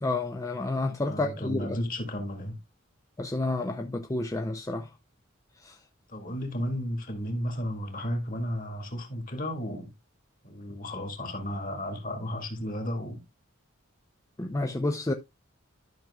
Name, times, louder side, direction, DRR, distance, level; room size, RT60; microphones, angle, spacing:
voice 1, 0.0-1.8 3.2-4.9 5.6-5.7 14.4-15.1, left 2 dB, 15° left, 0.5 m, -30 dB
voice 2, 1.0-2.6 6.1-9.9 10.4-13.2, equal, 40° left, 2.1 m, -33 dB
12.0 x 6.0 x 2.3 m
head